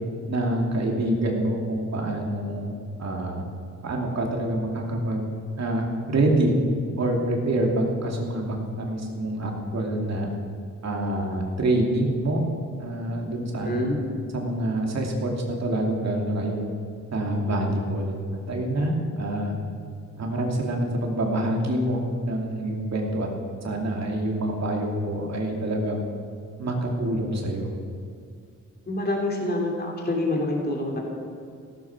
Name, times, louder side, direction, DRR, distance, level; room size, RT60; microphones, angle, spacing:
voice 1, 0.3-2.7 3.0-3.4 3.8-5.3 5.6-6.5 7.0-10.3 10.8-12.4 12.8-13.8 14.3-16.7 17.1-18.2 18.5-19.5 20.2-23.3 23.6-26.0 26.6-27.7, right 1 dB, 60° right, 1 dB, 2.7 m, -26 dB
voice 2, 13.6-14.0 28.8-31.0, left 1 dB, 30° left, -1 dB, 3.1 m, -26 dB
16.0 x 14.5 x 6.0 m, 2.3 s
wide cardioid pair, 150°, 31 cm